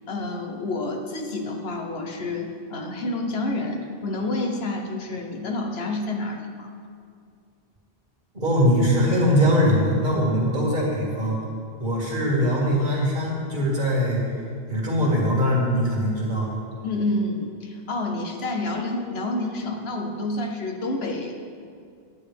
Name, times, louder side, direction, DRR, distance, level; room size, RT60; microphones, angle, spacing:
voice 1, 0.1-6.7 16.8-21.3, left 2 dB, 75° left, 3 dB, 1.2 m, -29 dB
voice 2, 8.3-11.4 11.8-14.2 14.7-16.6, equal, 50° right, -3 dB, 1.9 m, -21 dB
9.7 x 9.3 x 3.4 m, 2.2 s
omnidirectional pair, 1.1 m